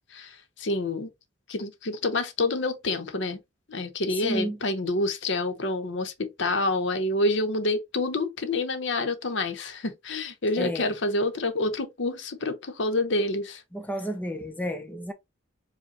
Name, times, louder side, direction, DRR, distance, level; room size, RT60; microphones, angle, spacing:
voice 1, 0.1-1.1 1.5-3.4 3.7-13.6, left 2 dB, 70° left, 0.9 m, -28 dB
voice 2, 4.2-4.6 10.6-10.9 13.7-15.1, equal, 10° left, 0.6 m, -31 dB
5.0 x 2.3 x 4.0 m
head